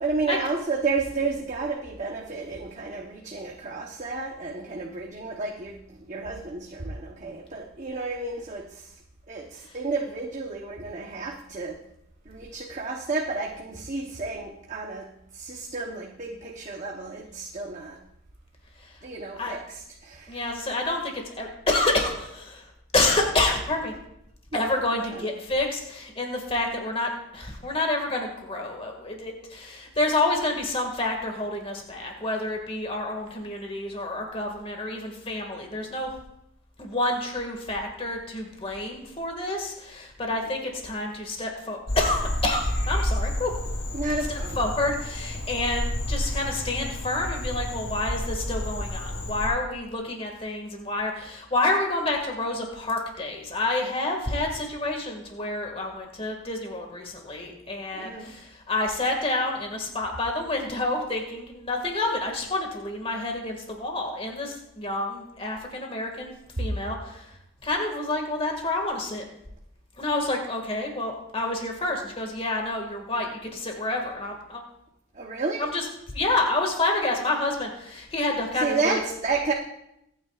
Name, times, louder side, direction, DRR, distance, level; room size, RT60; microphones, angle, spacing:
voice 1, 0.0-9.0 9.3-11.8 12.3-18.0 19.0-20.4 24.9-25.3 43.9-44.6 58.0-58.3 75.1-75.6 78.6-79.5, right 3 dB, 35° right, 0 dB, 0.9 m, -31 dB
voice 2, 20.3-23.9 24.5-36.1 36.8-43.5 44.3-67.3 67.6-69.2 70.0-74.6 75.6-75.8 76.1-79.0, left 2 dB, 30° left, 2 dB, 1.9 m, -28 dB
Frog, 41.9-49.5, left 1 dB, 85° left, 3.1 m, -30 dB
24.0 x 9.3 x 2.4 m, 0.81 s
head